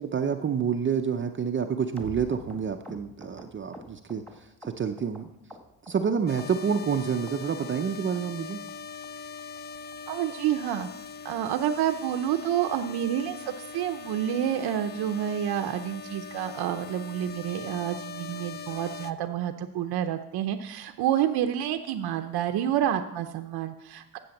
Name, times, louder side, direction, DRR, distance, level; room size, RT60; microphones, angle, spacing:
voice 1, 0.0-4.2 4.6-5.3 5.9-8.6, right 6 dB, 30° right, 6 dB, 0.6 m, -28 dB
sound 1, 2.0-5.2 5.5-6.1 6.4-7.0 7.3-7.4 7.6-7.8 8.1-8.2 8.5-8.7 9.0-9.1 9.4-9.6 9.9-10.0 10.3-10.5 10.8-10.9 11.2-11.3 11.7-11.8, right 1 dB, 5° left, 1.8 m, -46 dB
sound 2, 6.3-19.1, left 5 dB, 25° left, 0.4 m, -41 dB
voice 2, 10.1-10.9 11.2-24.2, right 10 dB, 85° right, 6 dB, 0.8 m, -29 dB
10.5 x 7.8 x 7.1 m, 0.86 s
cardioid pair, 135°, 38 cm